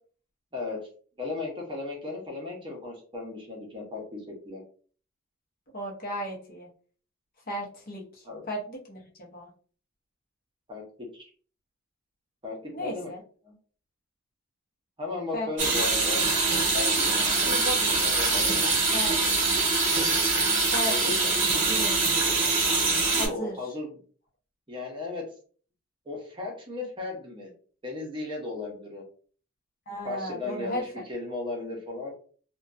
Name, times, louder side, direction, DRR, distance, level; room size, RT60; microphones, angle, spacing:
voice 1, 1.2-4.6 8.2-8.5 10.7-11.2 12.4-13.1 13.4-13.5 15.0-16.3 16.7-17.1 18.0-18.5 20.9-21.8 23.1-24.0 24.7-25.2 26.1-27.5 27.8-29.0 30.0-32.1, left 3 dB, 25° right, 0 dB, 0.7 m, -36 dB
voice 2, 5.7-6.7 7.5-9.5 12.7-13.2 15.3-15.5 15.7-15.9 17.4-18.0 18.9-19.5 20.7-20.9 21.7-22.0 23.2-23.6 29.9-30.9, equal, 45° left, -1 dB, 0.7 m, -35 dB
sound 1, 15.6-23.3, right 3 dB, 40° right, 1.0 m, -24 dB
2.4 x 2.2 x 2.4 m, 0.42 s
head